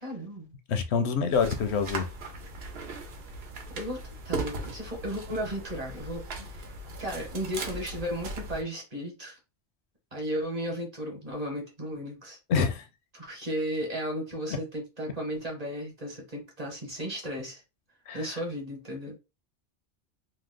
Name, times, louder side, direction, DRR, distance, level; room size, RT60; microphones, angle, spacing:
voice 1, 0.0-0.5 3.7-6.7 7.0-9.4 10.1-12.4 13.1-17.6 18.1-19.2, equal, 35° right, 1.1 m, -35 dB
voice 2, 0.7-2.1 12.5-12.8 18.1-18.2, left 6 dB, 80° left, 0.9 m, -26 dB
sound 1, 1.3-8.6, right 2 dB, 70° right, 0.9 m, -38 dB
2.8 x 2.1 x 3.5 m
omnidirectional pair, 1.1 m